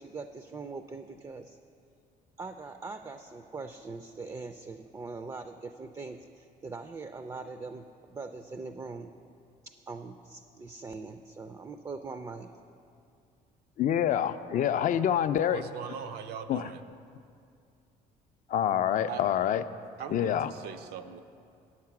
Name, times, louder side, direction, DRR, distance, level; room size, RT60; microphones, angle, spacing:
voice 1, 0.0-1.6 2.4-7.8 8.1-9.1 9.6-12.5, right 4 dB, 20° right, 8 dB, 0.4 m, -42 dB
voice 2, 13.8-15.6 16.5-16.7 18.5-19.6 20.1-20.5, left 10 dB, 50° left, 11 dB, 0.4 m, -26 dB
voice 3, 15.5-16.8 19.1-19.2 20.0-21.2, right 8 dB, 75° right, 8 dB, 0.5 m, -40 dB
8.5 x 7.4 x 5.9 m, 2.4 s
cardioid pair, 110°, 17 cm